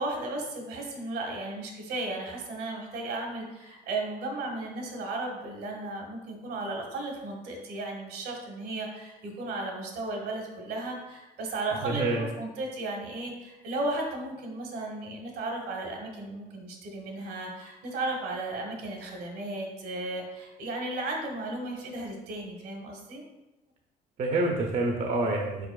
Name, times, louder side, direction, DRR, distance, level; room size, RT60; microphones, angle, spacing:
voice 1, 0.0-23.2, right 2 dB, 75° right, 1 dB, 1.1 m, -35 dB
voice 2, 11.8-12.3 24.2-25.7, right 2 dB, 50° right, 0 dB, 0.6 m, -27 dB
4.9 x 4.4 x 2.3 m, 1.0 s
cardioid pair, 110°, 17 cm